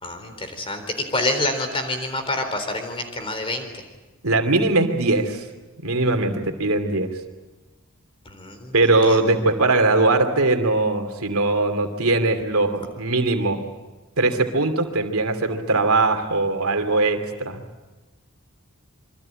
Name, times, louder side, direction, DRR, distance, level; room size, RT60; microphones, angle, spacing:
voice 1, 0.0-3.7 8.3-8.8 9.1-9.2, left 2 dB, 25° left, 7 dB, 3.9 m, -27 dB
voice 2, 4.2-5.4 5.8-7.1 8.7-13.6 14.2-17.6, right 2 dB, 80° right, 6 dB, 2.7 m, -20 dB
26.5 x 24.0 x 8.8 m, 1.2 s
head